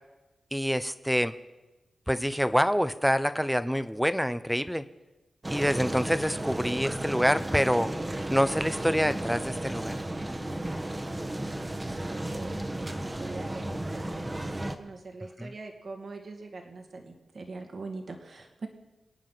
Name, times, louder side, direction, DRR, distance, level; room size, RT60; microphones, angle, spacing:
voice 1, 0.5-1.3 2.1-4.8 5.5-7.9 8.3-10.0 15.4-15.5, equal, ahead, 13 dB, 0.9 m, -26 dB
sound 1, 5.4-14.8, right 1 dB, 25° right, 1.5 m, -34 dB
voice 2, 12.1-18.7, right 3 dB, 60° right, 3 dB, 2.4 m, -43 dB
26.5 x 9.1 x 5.9 m, 1.1 s
cardioid pair, 70°, 0 cm